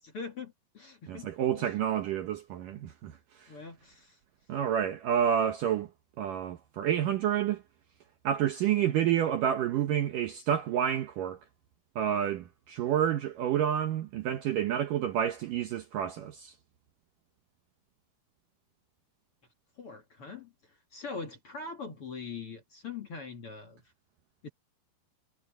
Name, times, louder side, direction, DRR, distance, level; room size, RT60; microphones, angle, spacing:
voice 1, 0.0-1.3 1.6-1.7 3.5-4.2 19.8-20.5 20.9-23.8 24.4-24.5, left 4 dB, 45° left, 2.3 m, -42 dB
voice 2, 1.1-3.1 3.4-3.5 4.5-5.9 6.2-7.6 8.2-11.4 12.0-16.5, right 9 dB, 70° right, 2.2 m, -29 dB
omnidirectional pair, 4.9 m